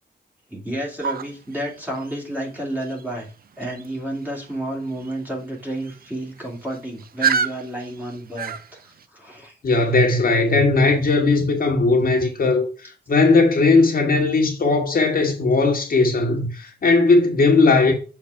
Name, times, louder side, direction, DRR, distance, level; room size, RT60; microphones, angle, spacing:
voice 1, 0.5-3.3 3.6-9.5, right 1 dB, 10° right, 2.8 m, -31 dB
sound 1, 1.0-9.1, right 6 dB, 55° right, 0.6 m, -31 dB
voice 2, 9.6-17.9, left 3 dB, 50° left, 1.8 m, -18 dB
7.1 x 4.4 x 4.8 m
wide cardioid pair, 135°, 18 cm